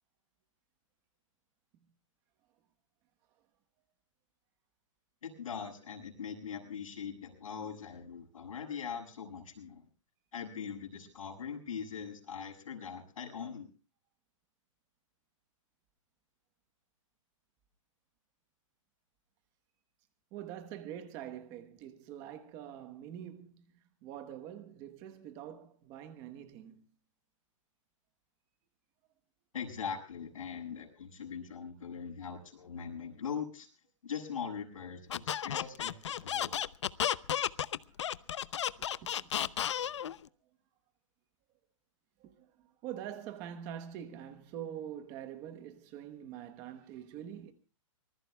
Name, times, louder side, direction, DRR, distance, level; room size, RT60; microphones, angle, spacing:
voice 1, 5.2-9.8 10.3-13.7 29.5-33.7 34.0-36.6, left 7 dB, 80° left, 7.3 m, -41 dB
voice 2, 20.3-23.6 24.0-26.8 36.2-36.3 38.0-38.1 38.7-39.6 42.2-47.5, right 10 dB, 20° right, 1.1 m, -45 dB
Squeak, 35.1-40.2, left 10 dB, 60° left, 0.7 m, -33 dB
25.5 x 20.5 x 2.3 m
hypercardioid pair, 175°, 17 cm